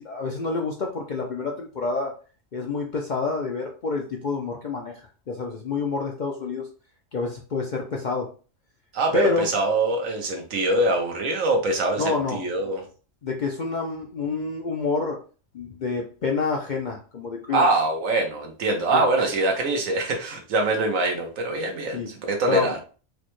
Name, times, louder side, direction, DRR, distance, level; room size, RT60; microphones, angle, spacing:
voice 1, 0.0-2.1 2.5-5.0 5.3-6.7 7.1-8.3 9.1-9.5 12.0-12.4 13.2-15.2 15.5-17.7 18.9-19.0 21.9-22.1 22.5-22.7, left 4 dB, 60° left, 0.5 m, -28 dB
voice 2, 8.9-12.8 17.5-22.8, right 2 dB, 85° right, 1.2 m, -24 dB
4.8 x 2.1 x 3.0 m
omnidirectional pair, 1.3 m